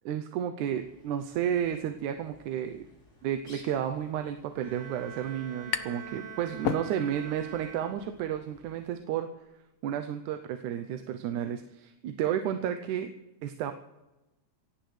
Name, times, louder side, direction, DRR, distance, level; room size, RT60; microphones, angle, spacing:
voice 1, 0.1-2.8 3.2-9.3 9.8-13.1 13.4-13.7, right 10 dB, 90° right, 7 dB, 2.2 m, -32 dB
Bird, 0.7-9.0, left 2 dB, 25° left, 3.5 m, -59 dB
Bowed string instrument, 4.6-8.4, right 5 dB, 10° left, 4.2 m, -45 dB
sound 1, 4.9-6.1 6.4-7.4, left 9 dB, 75° left, 1.3 m, -33 dB
26.0 x 16.5 x 3.3 m, 1.0 s
omnidirectional pair, 3.4 m